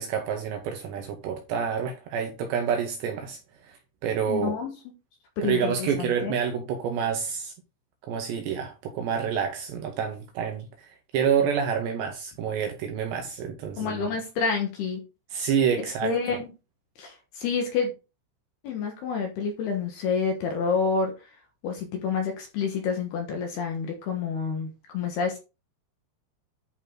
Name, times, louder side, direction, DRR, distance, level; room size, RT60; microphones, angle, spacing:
voice 1, 0.0-4.5 5.4-7.5 8.1-14.1 15.3-16.1, right 7 dB, 75° right, 2.7 m, -28 dB
voice 2, 4.3-4.7 5.4-6.4 13.8-15.0 16.0-16.5 17.0-17.9 18.6-21.1 21.6-25.4, left 5 dB, 65° left, 2.8 m, -28 dB
11.0 x 4.6 x 3.9 m
omnidirectional pair, 6.0 m